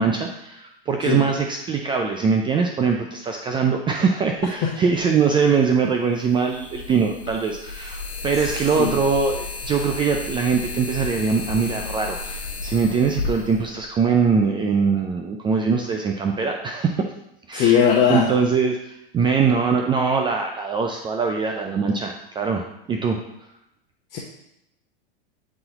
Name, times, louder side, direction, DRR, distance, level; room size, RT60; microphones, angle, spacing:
voice 1, 0.0-17.0 17.5-17.8 18.1-23.2, right 5 dB, 15° right, 2 dB, 0.3 m, -22 dB
sound 1, 5.0-5.1 6.4-14.3, left 3 dB, 80° left, 1.4 m, -33 dB
voice 2, 17.5-18.3 24.1-24.2, left 8 dB, 35° left, -2 dB, 0.9 m, -19 dB
8.7 x 4.0 x 2.9 m, 0.81 s
hypercardioid pair, 120°, 30 cm